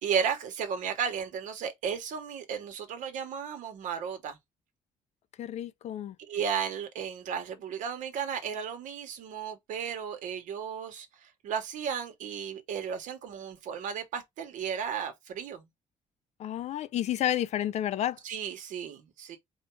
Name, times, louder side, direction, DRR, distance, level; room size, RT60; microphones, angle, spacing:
voice 1, 0.0-4.4 6.3-15.6 18.2-19.4, right 7 dB, 80° right, 1.2 m, -34 dB
voice 2, 5.4-6.2 16.4-18.2, left 11 dB, 60° left, 0.4 m, -30 dB
4.3 x 2.3 x 4.6 m
cardioid pair, 135°, 13 cm